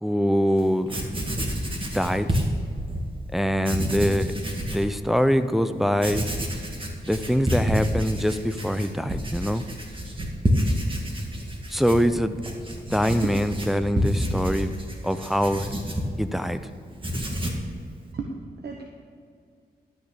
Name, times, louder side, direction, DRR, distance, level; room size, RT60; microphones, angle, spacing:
voice 1, 0.0-0.9 1.9-2.4 3.3-4.3 4.7-6.2 7.1-9.6 11.7-12.4 12.9-14.8 15.0-15.7 16.2-16.6, equal, ahead, 10 dB, 0.6 m, -23 dB
Writing, 0.6-0.7 0.9-3.1 3.6-4.9 5.3-5.4 5.9-16.6 16.9-17.7, equal, 30° right, 1.9 m, -29 dB
voice 2, 18.1-18.8, right 4 dB, 70° right, 2 dB, 1.1 m, -33 dB
12.0 x 6.4 x 7.1 m, 2.2 s
cardioid pair, 75°, 17 cm